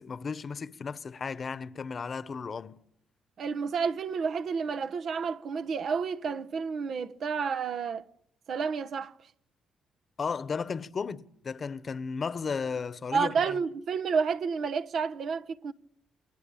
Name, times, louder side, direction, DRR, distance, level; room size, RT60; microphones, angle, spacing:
voice 1, 0.0-2.8 10.2-13.6, left 5 dB, 40° left, 1.2 m, -34 dB
voice 2, 3.4-8.0 8.5-9.1 13.1-15.7, right 5 dB, 60° right, 1.1 m, -30 dB
29.0 x 22.5 x 8.8 m
cardioid pair, 90°, 0 cm